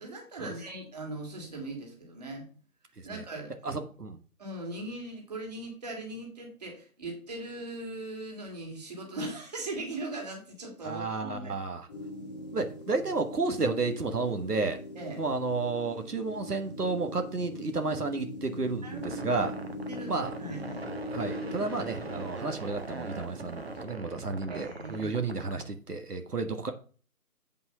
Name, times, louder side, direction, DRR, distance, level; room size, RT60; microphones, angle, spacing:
voice 1, 0.0-2.5 3.0-3.5 4.4-11.6 14.9-15.2 18.8-19.3 19.9-20.9 24.5-25.2, right 2 dB, 25° right, 1 dB, 2.6 m, -39 dB
voice 2, 3.6-4.2 10.8-11.8 12.5-14.8 15.2-19.5 20.1-20.3 21.1-26.7, right 3 dB, 85° right, 6 dB, 1.6 m, -32 dB
sound 1, 11.9-23.8, left 2 dB, 5° left, 1.4 m, -42 dB
sound 2, 19.0-25.6, right 3 dB, 40° right, 1.4 m, -40 dB
8.6 x 5.6 x 5.7 m, 0.39 s
figure-of-eight pair, 165°, 45 cm